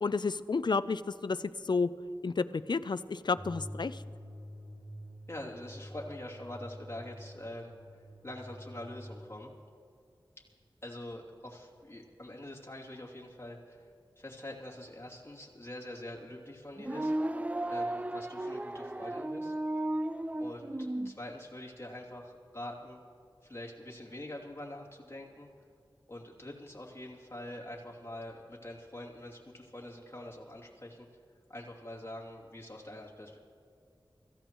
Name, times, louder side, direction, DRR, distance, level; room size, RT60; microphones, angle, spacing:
voice 1, 0.0-1.4 1.7-1.9 2.2-4.0, left 4 dB, 60° left, 14 dB, 0.5 m, -31 dB
sound 1, 3.3-9.3, equal, 60° right, 2.8 m, -47 dB
voice 2, 5.3-9.5 10.8-17.3 17.7-19.5 20.4-23.0 23.4-25.5 26.1-31.1 31.5-33.4, left 1 dB, 30° left, -4 dB, 2.7 m, -45 dB
sound 2, 16.8-21.1, right 1 dB, 15° right, 0.4 m, -34 dB
25.0 x 15.0 x 3.1 m, 2.4 s
wide cardioid pair, 65°, 9 cm